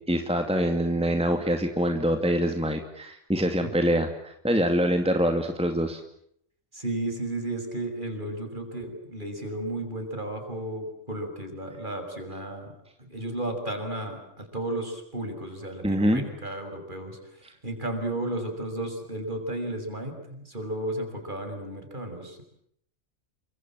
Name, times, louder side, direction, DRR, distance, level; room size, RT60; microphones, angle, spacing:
voice 1, 0.1-6.0 15.8-16.3 17.4-17.5, equal, 5° right, 5 dB, 2.4 m, -25 dB
voice 2, 6.7-12.7 13.1-17.2 17.6-22.4, right 1 dB, 40° right, 5 dB, 6.9 m, -33 dB
29.5 x 26.0 x 7.5 m, 0.70 s
omnidirectional pair, 1.3 m